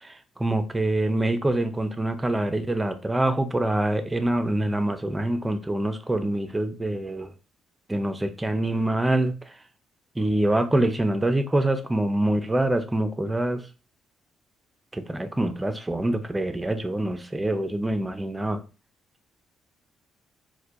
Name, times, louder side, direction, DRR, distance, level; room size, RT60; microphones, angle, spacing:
voice 1, 0.0-7.3 7.9-9.3 10.2-13.6 14.9-18.6, right 1 dB, 15° right, 0.5 m, -25 dB
4.3 x 2.1 x 2.5 m
cardioid pair, 90°, 0 cm